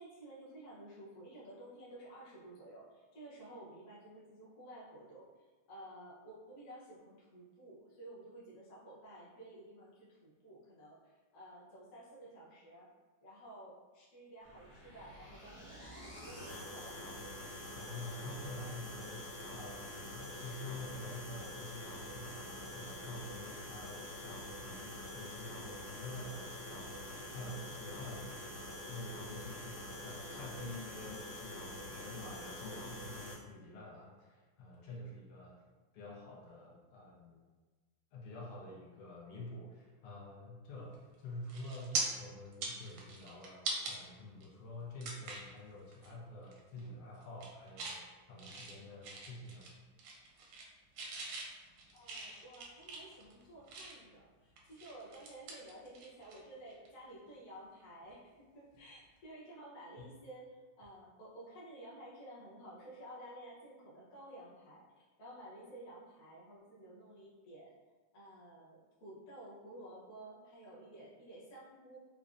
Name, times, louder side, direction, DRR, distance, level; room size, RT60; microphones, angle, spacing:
voice 1, 0.0-12.9 13.2-17.2 51.9-64.9 65.2-67.7 68.1-72.0, right 1 dB, 50° left, -7 dB, 1.0 m, -53 dB
sound 1, 14.4-33.4, left 1 dB, 30° left, 0.4 m, -46 dB
voice 2, 17.7-28.6 28.9-37.4 38.1-48.0 48.3-49.7 60.0-60.1, left 1 dB, 80° left, -4 dB, 1.6 m, -48 dB
sound 2, 40.9-41.1 41.5-42.0 42.5-43.9 44.4-44.5 45.0-45.5 45.9-46.1 46.4-46.9 47.2-48.0 48.4-49.7 50.0-50.7 51.0-54.1 54.6-56.4 56.7-56.9 58.7-58.9, right 3 dB, 85° right, 1.5 m, -42 dB
4.8 x 2.1 x 2.5 m, 1.3 s
omnidirectional pair, 2.4 m